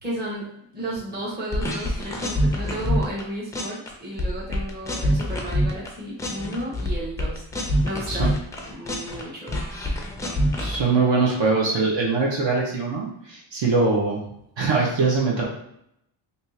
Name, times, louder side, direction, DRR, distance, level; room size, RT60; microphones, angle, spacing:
voice 1, 0.0-0.5 0.7-7.5 7.8-8.4 8.7-9.9, right 1 dB, 20° right, -6 dB, 1.1 m, -33 dB
sound 1, 1.5-3.2 3.5-3.9 4.2-5.9 6.2-9.2 9.5-10.8, equal, 10° left, 0.3 m, -25 dB
voice 2, 10.6-14.2 14.6-15.4, right 4 dB, 60° right, -3 dB, 1.1 m, -22 dB
3.5 x 2.7 x 2.8 m, 0.76 s
cardioid pair, 140°, 50 cm